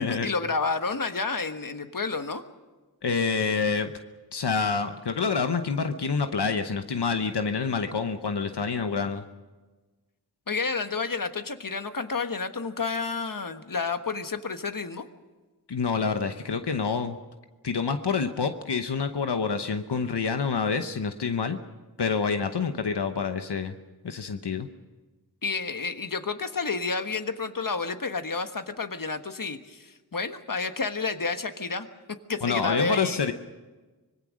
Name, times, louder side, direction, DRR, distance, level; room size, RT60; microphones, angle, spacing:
voice 1, 0.0-2.4 10.5-15.1 25.4-31.9 32.3-33.2, left 4 dB, 55° left, 8 dB, 1.5 m, -30 dB
voice 2, 3.0-3.9 4.3-9.2 15.7-17.2 17.6-21.6 22.0-23.7 24.0-24.7 32.4-33.3, left 5 dB, 90° left, 7 dB, 1.0 m, -27 dB
25.0 x 20.5 x 6.4 m, 1.2 s
wide cardioid pair, 45°, 39 cm